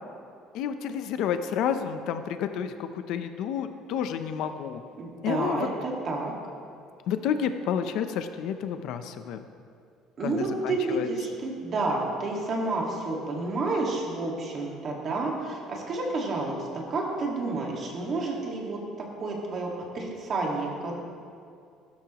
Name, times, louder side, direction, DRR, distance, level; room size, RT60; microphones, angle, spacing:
voice 1, 0.5-4.8 5.2-5.7 7.1-9.4 10.2-11.1, left 8 dB, 60° left, 8 dB, 0.7 m, -30 dB
voice 2, 5.0-6.3 10.2-16.6 16.9-18.8 19.2-20.9, right 3 dB, 30° right, -1 dB, 1.9 m, -30 dB
16.0 x 13.0 x 3.1 m, 2.3 s
cardioid pair, 180°, 0 cm